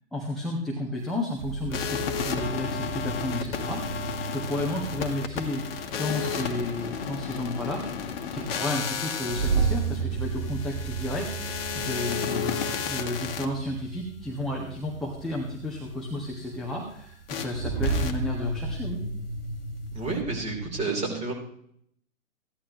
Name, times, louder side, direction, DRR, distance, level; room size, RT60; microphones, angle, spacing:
voice 1, 0.1-4.0 4.3-7.8 8.3-11.3 11.7-12.6 12.9-19.0, left 2 dB, ahead, -3 dB, 1.5 m, -32 dB
sound 1, 1.4-20.8, right 4 dB, 40° right, 2.2 m, -34 dB
sound 2, 1.7-13.5 17.3-17.5 17.8-18.1, left 5 dB, 45° left, 1.6 m, -32 dB
voice 2, 19.9-21.3, right 3 dB, 15° right, 0 dB, 3.5 m, -30 dB
16.0 x 11.5 x 3.0 m, 0.68 s
hypercardioid pair, 135°, 42 cm